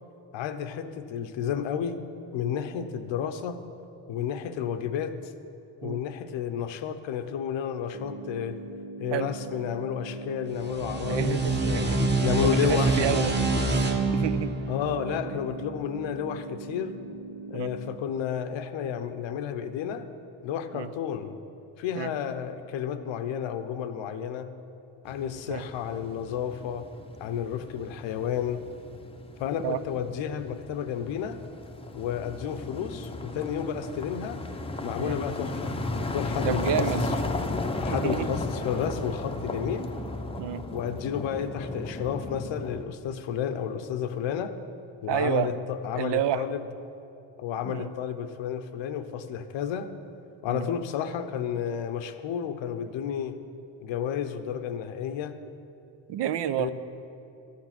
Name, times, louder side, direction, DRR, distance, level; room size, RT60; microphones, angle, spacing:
voice 1, 0.3-2.1 2.3-3.6 4.1-5.2 5.8-8.6 9.0-11.8 12.2-13.1 14.7-16.9 17.5-20.1 20.4-21.4 21.8-24.5 25.0-26.9 27.2-28.6 29.4-31.4 31.9-34.4 34.8-37.1 37.8-39.9 40.7-44.5 45.0-46.6 47.4-49.9 50.4-53.4 53.8-55.4 56.6-56.7, left 8 dB, 90° left, 9 dB, 0.9 m, -31 dB
sound 1, 7.9-17.9, right 4 dB, 85° right, 2.0 m, -41 dB
sound 2, 10.5-15.8, right 2 dB, 25° right, 1.1 m, -26 dB
voice 2, 11.0-12.1 12.4-13.4 14.1-14.5 17.5-17.7 20.7-20.9 22.0-22.1 25.5-25.6 29.6-29.8 35.0-35.2 36.4-37.1 37.9-38.3 40.4-40.6 45.1-45.5 45.9-46.4 47.6-47.9 50.5-50.6 56.1-56.7, right 10 dB, 65° right, 13 dB, 0.7 m, -29 dB
sound 3, 25.1-42.8, left 2 dB, 15° left, 0.6 m, -35 dB
13.0 x 8.8 x 6.0 m, 2.8 s
cardioid pair, 125°, 44 cm